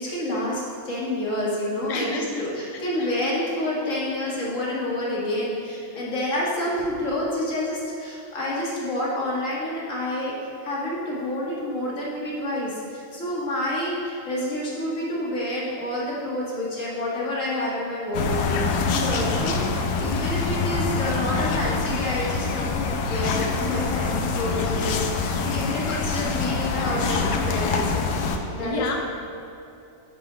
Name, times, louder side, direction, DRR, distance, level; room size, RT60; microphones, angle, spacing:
voice 1, 0.0-10.3 10.6-28.0 28.5-29.0, left 1 dB, 50° left, -5 dB, 1.9 m, -28 dB
voice 2, 1.9-2.4 2.7-3.1 7.9-8.0 28.6-29.0, left 2 dB, 70° left, 1 dB, 0.3 m, -30 dB
sound 1, 18.1-28.4, left 4 dB, 85° left, 1.3 m, -25 dB
11.0 x 4.1 x 4.9 m, 2.7 s
omnidirectional pair, 1.8 m